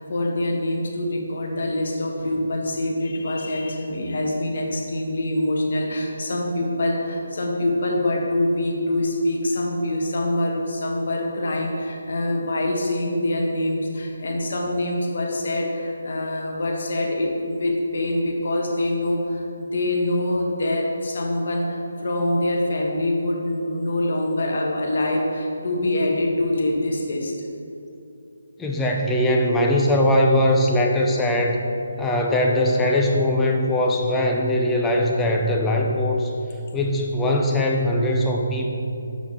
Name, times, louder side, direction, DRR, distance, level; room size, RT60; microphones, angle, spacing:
voice 1, 0.0-27.4, left 1 dB, 60° left, 0 dB, 1.2 m, -25 dB
voice 2, 28.6-31.6 32.0-36.3 36.7-38.7, left 1 dB, 10° left, 0 dB, 0.5 m, -21 dB
6.3 x 6.3 x 3.7 m, 2.7 s
hypercardioid pair, 160°, 0 cm